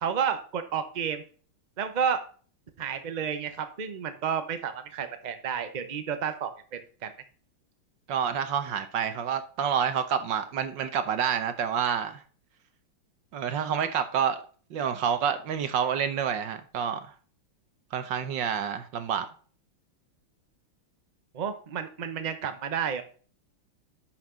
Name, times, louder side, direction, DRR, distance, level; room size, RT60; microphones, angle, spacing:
voice 1, 0.0-1.2 1.8-2.2 2.8-7.1 21.3-23.0, right 7 dB, 90° right, 0.4 m, -31 dB
voice 2, 8.1-12.2 13.3-14.4 14.7-17.0 17.9-19.3, right 8 dB, 65° right, 1.4 m, -28 dB
10.5 x 5.8 x 3.8 m
omnidirectional pair, 2.3 m